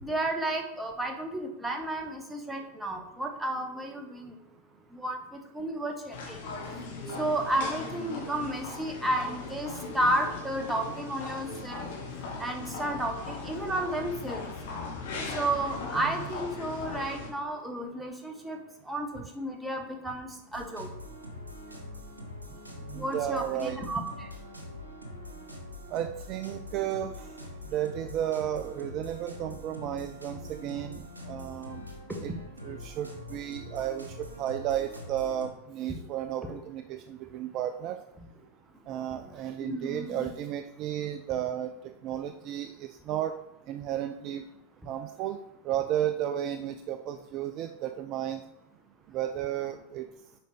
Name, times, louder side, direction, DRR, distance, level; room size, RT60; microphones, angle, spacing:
voice 1, 0.0-4.3 4.9-6.4 7.2-11.9 12.4-14.5 15.3-18.6 18.8-20.9 22.9-24.3 36.4-36.6 39.6-40.2, right 1 dB, 10° right, 3 dB, 1.0 m, -32 dB
sound 1, 6.1-17.3, left 3 dB, 55° left, 1.4 m, -38 dB
sound 2, 20.5-35.5, left 1 dB, 80° right, 1.1 m, -44 dB
voice 2, 22.9-23.8 25.9-27.3 27.7-31.8 32.2-32.3 32.6-38.0 38.9-43.4 43.7-44.4 44.9-45.4 45.6-48.4 49.1-50.1, right 11 dB, 40° right, 9 dB, 0.3 m, -33 dB
8.1 x 5.1 x 3.3 m, 0.85 s
figure-of-eight pair, 90°, 0 cm